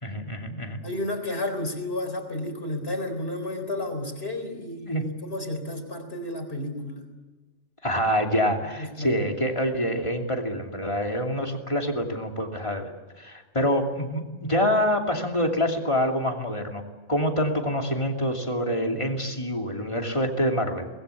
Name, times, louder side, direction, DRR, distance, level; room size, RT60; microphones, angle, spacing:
voice 1, 0.0-0.8 4.9-5.0 7.8-12.9 13.2-16.8 17.1-20.9, equal, 25° left, 2 dB, 2.8 m, -26 dB
voice 2, 0.8-7.1 8.8-9.2, left 1 dB, 60° left, 6 dB, 4.4 m, -32 dB
25.0 x 20.5 x 8.4 m, 1.3 s
omnidirectional pair, 1.2 m